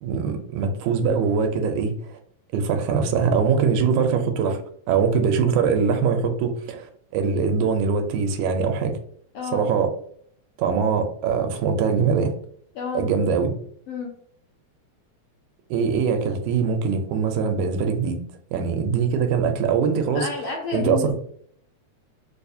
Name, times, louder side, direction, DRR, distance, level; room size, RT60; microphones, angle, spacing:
voice 1, 0.0-2.2 2.5-4.6 4.9-8.9 9.5-9.9 10.6-12.3 12.9-13.5 15.7-18.2 18.5-20.3 20.7-21.1, right 6 dB, 85° right, 6 dB, 2.0 m, -22 dB
voice 2, 9.3-9.7 12.7-13.1 13.9-14.1 20.1-21.1, left 5 dB, 75° left, 0 dB, 1.5 m, -30 dB
4.8 x 2.4 x 2.6 m, 0.62 s
omnidirectional pair, 3.4 m